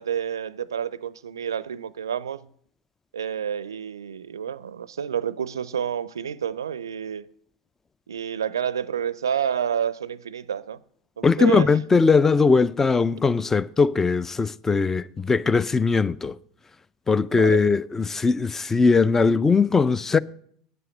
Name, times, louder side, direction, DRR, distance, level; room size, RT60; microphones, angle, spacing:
voice 1, 0.0-2.5 3.1-7.3 8.1-10.8 11.2-11.8 17.3-17.6, right 8 dB, 75° right, 0.4 m, -29 dB
voice 2, 11.2-16.3 17.1-20.2, left 4 dB, 15° left, 0.4 m, -20 dB
9.6 x 7.7 x 9.4 m
figure-of-eight pair, 75°, 2 cm